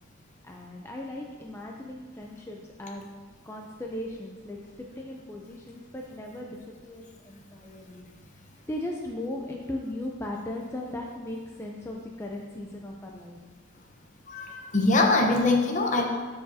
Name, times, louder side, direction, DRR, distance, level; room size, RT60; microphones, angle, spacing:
voice 1, 0.4-3.0 3.4-6.6 6.8-8.1 8.7-13.4, left 1 dB, 15° left, -1 dB, 0.5 m, -37 dB
voice 2, 14.3-16.1, left 2 dB, 40° left, 2 dB, 0.9 m, -23 dB
12.0 x 4.8 x 2.8 m, 1.5 s
head